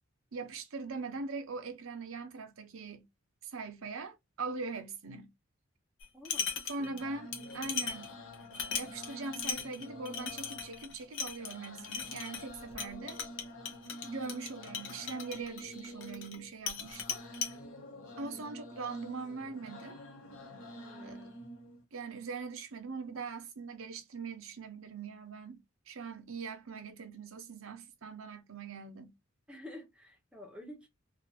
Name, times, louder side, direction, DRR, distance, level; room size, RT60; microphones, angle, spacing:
voice 1, 0.3-3.1 3.4-5.3 6.7-8.1 8.7-13.2 14.1-17.2 18.2-20.0 21.0-21.2 21.9-29.1, right 4 dB, 75° right, 0.7 m, -41 dB
sound 1, 6.0-7.0 7.3-16.4 16.7-17.5, left 6 dB, 60° left, 0.6 m, -38 dB
voice 2, 6.1-7.1 14.0-14.4 18.1-18.6 20.8-21.4 29.5-30.9, left 1 dB, 5° right, 0.6 m, -51 dB
sound 2, 7.0-21.8, left 1 dB, 80° left, 0.9 m, -48 dB
2.5 x 2.4 x 2.6 m
head